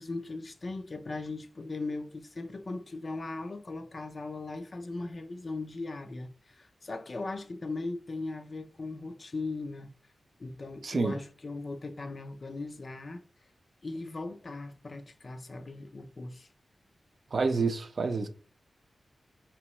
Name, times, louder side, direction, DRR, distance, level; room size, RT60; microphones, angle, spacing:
voice 1, 0.0-9.9 10.4-13.2 13.8-16.5, left 3 dB, 45° left, 0.4 m, -38 dB
voice 2, 10.8-11.2 17.3-18.3, right 4 dB, 55° right, 0.5 m, -28 dB
4.5 x 3.0 x 3.0 m
wide cardioid pair, 85°, 0 cm